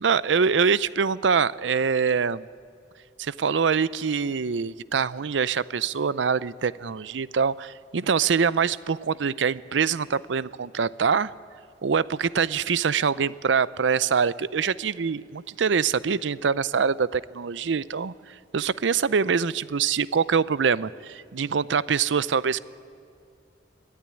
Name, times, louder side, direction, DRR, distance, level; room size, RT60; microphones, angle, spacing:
voice 1, 0.0-2.4 3.2-11.3 11.8-22.6, right 6 dB, 85° right, 17 dB, 0.5 m, -24 dB
22.5 x 14.0 x 9.9 m, 2.3 s
head